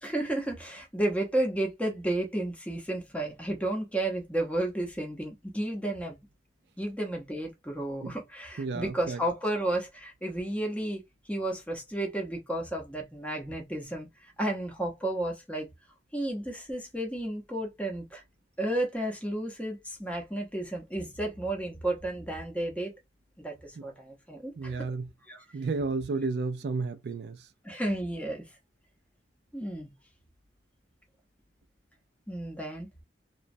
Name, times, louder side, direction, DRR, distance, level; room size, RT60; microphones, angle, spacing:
voice 1, 0.0-6.2 6.8-11.0 11.3-15.7 16.1-18.2 18.6-22.9 23.4-24.8 25.3-25.4 27.6-28.4 29.5-29.9 32.3-32.9, right 1 dB, 5° left, 0.7 m, -32 dB
voice 2, 8.6-9.2 23.8-23.9 24.6-25.1 25.5-27.5, right 4 dB, 60° right, 0.3 m, -32 dB
3.0 x 2.2 x 2.6 m
head